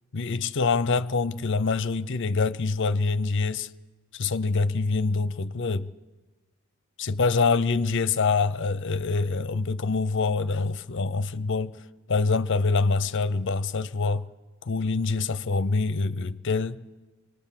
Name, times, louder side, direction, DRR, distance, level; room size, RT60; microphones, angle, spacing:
voice 1, 0.1-3.7 4.1-5.9 7.0-14.3 14.6-16.8, left 4 dB, 55° left, 0.6 m, -25 dB
24.5 x 19.0 x 7.4 m
head